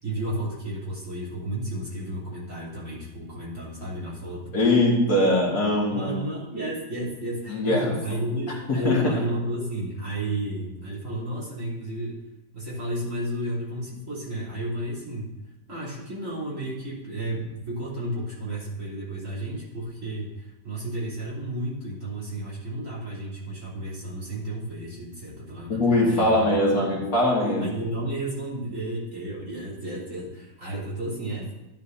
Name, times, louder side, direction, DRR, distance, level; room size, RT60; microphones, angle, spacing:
voice 1, 0.0-4.5 5.6-12.2 12.5-15.4 15.7-26.3 26.7-27.0 27.6-31.5, right 1 dB, 45° right, -8 dB, 4.0 m, -32 dB
voice 2, 4.5-6.1 7.5-8.0 8.7-9.1 25.7-27.7, left 1 dB, 55° left, -3 dB, 2.2 m, -21 dB
12.5 x 9.5 x 2.7 m, 1.0 s
omnidirectional pair, 1.9 m